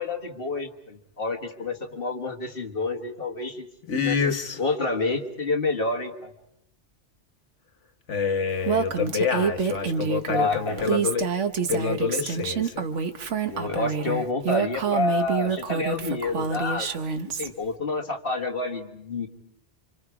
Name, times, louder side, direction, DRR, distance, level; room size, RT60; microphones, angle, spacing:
voice 1, 0.0-3.7 4.0-4.2 4.6-6.3 10.3-10.9 12.2-12.3 13.4-16.9 17.2-19.3, left 3 dB, 50° left, 3 dB, 1.9 m, -28 dB
voice 2, 3.9-4.6 8.1-11.3 11.7-12.8, left 6 dB, 85° left, 7 dB, 1.6 m, -27 dB
Female speech woman speaking, 8.6-17.5, right 6 dB, 90° right, 1.4 m, -27 dB
29.5 x 26.5 x 4.9 m, 0.83 s
omnidirectional pair, 1.2 m